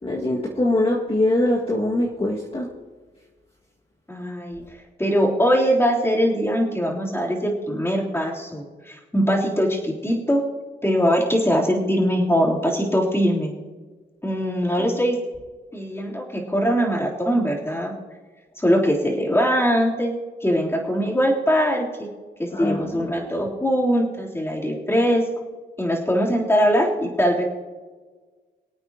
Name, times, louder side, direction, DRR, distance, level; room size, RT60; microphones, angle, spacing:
voice 1, 0.0-2.7 22.5-23.1, left 1 dB, 30° left, -4 dB, 2.0 m, -23 dB
voice 2, 4.1-4.6 5.0-10.4 10.8-13.5 14.2-15.2 15.7-17.9 18.6-20.1 20.4-22.1 22.4-25.2 25.8-27.4, equal, 15° left, -3 dB, 3.5 m, -21 dB
25.0 x 8.7 x 3.0 m, 1.4 s
cardioid pair, 80°, 19 cm